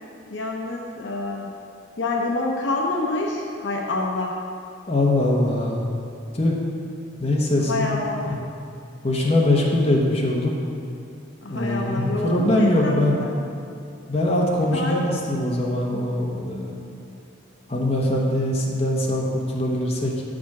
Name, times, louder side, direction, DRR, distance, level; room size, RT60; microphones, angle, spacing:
voice 1, 0.3-1.5 2.0-4.4 7.6-8.3 11.4-13.3 14.7-14.9, left 2 dB, 65° left, 0 dB, 0.7 m, -27 dB
voice 2, 4.9-5.9 6.3-6.6 7.2-8.0 9.0-10.5 11.5-13.2 14.1-16.8 17.7-20.2, left 1 dB, 30° left, -3 dB, 1.0 m, -22 dB
7.1 x 5.0 x 6.0 m, 2.5 s
head